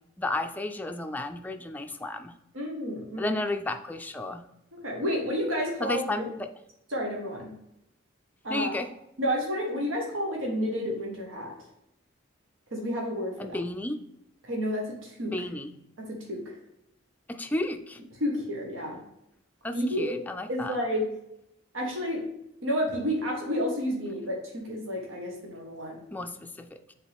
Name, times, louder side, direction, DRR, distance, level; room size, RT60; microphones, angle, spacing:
voice 1, 0.2-2.3 3.2-4.4 5.8-6.5 8.5-8.9 13.4-14.0 15.3-15.7 17.3-18.0 19.6-20.8 26.1-26.8, left 2 dB, 10° left, 6 dB, 0.3 m, -32 dB
voice 2, 2.5-3.4 4.8-6.3 6.9-7.5 8.4-8.8 9.2-11.5 12.7-13.6 14.4-15.3 16.0-16.4 18.2-19.0 19.7-21.1 21.7-22.2 22.6-26.0, equal, 90° right, -1 dB, 1.4 m, -30 dB
7.4 x 3.8 x 3.5 m, 0.83 s
head